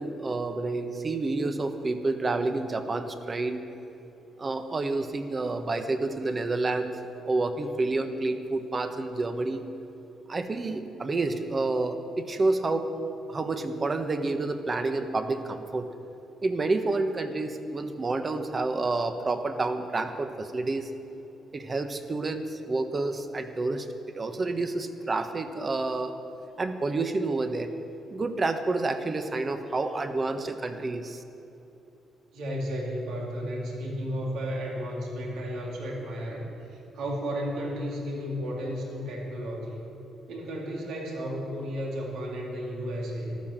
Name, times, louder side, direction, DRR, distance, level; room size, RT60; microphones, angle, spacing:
voice 1, 0.0-3.6 4.4-7.0 7.2-9.7 10.3-12.9 13.3-15.9 16.4-20.9 21.5-23.9 24.1-26.1 26.6-27.7 28.1-31.2, right 3 dB, 30° right, 7 dB, 1.3 m, -29 dB
voice 2, 32.3-36.4 36.7-39.8 40.3-43.4, equal, 80° right, -2 dB, 3.4 m, -33 dB
13.0 x 12.5 x 7.5 m, 3.0 s
cardioid pair, 90°, 0 cm